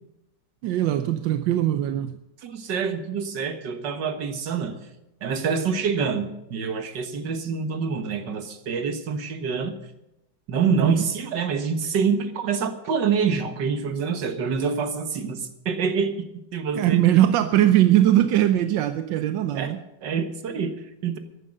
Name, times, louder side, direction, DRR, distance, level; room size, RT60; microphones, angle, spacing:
voice 1, 0.6-2.2 10.7-11.0 16.7-19.8, right 12 dB, 90° right, 10 dB, 1.4 m, -20 dB
voice 2, 2.4-4.8 5.2-9.7 10.5-17.0 19.5-19.7 20.0-21.2, right 6 dB, 75° right, 8 dB, 2.1 m, -26 dB
14.0 x 11.5 x 6.5 m, 0.88 s
omnidirectional pair, 1.9 m